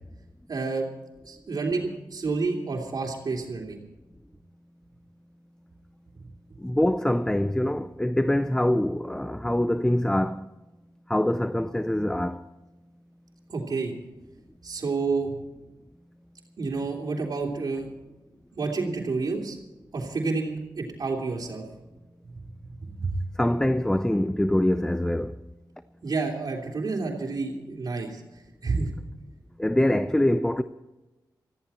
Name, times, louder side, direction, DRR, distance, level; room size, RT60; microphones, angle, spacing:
voice 1, 0.5-0.9 1.2-3.8 13.5-13.9 14.6-15.3 16.6-17.9 18.5-19.6 19.9-21.6 22.9-23.2 26.0-28.2 28.6-28.9, right 4 dB, 60° right, 3.1 m, -29 dB
voice 2, 6.6-10.4 11.1-12.4 23.4-25.3 29.6-30.6, left 1 dB, 10° left, 0.5 m, -24 dB
20.5 x 14.5 x 4.3 m
wide cardioid pair, 85°, 8 cm